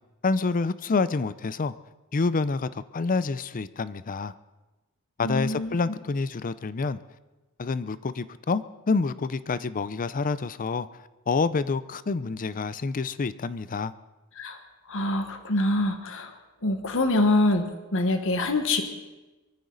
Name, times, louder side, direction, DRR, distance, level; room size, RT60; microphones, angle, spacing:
voice 1, 0.2-1.7 2.1-4.3 5.2-7.0 7.6-10.9 11.3-13.9, left 4 dB, 40° left, 15 dB, 0.5 m, -27 dB
voice 2, 5.2-5.8 14.4-14.6 14.9-16.3 16.6-18.8, left 2 dB, 65° left, 7 dB, 1.4 m, -25 dB
23.0 x 14.5 x 4.0 m, 1.1 s
head